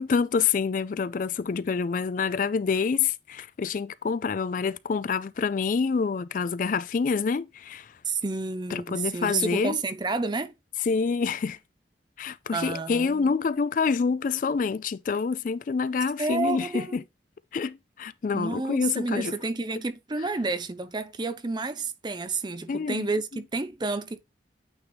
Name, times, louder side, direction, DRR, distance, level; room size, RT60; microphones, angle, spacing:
voice 1, 0.0-7.9 8.7-9.8 10.9-11.6 12.2-17.0 17.5-19.3 22.7-23.1, left 5 dB, 45° left, 0.3 m, -27 dB
voice 2, 8.0-10.5 12.5-13.3 16.2-17.0 18.3-24.2, right 3 dB, 25° right, 0.6 m, -30 dB
8.8 x 3.0 x 4.0 m
head